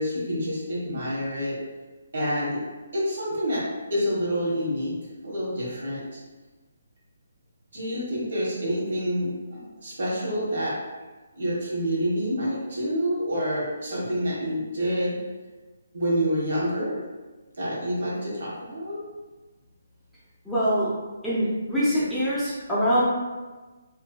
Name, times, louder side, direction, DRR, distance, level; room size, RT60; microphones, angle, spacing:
voice 1, 0.0-1.6 2.1-2.6 2.9-3.6 3.9-5.0 5.2-6.2 7.7-10.7 11.4-15.2 15.9-17.0 17.6-19.0, equal, 60° right, -6 dB, 0.9 m, -27 dB
voice 2, 20.5-20.9 21.2-23.0, equal, ahead, -12 dB, 0.6 m, -24 dB
2.6 x 2.1 x 2.2 m, 1.2 s
figure-of-eight pair, 140°, 0 cm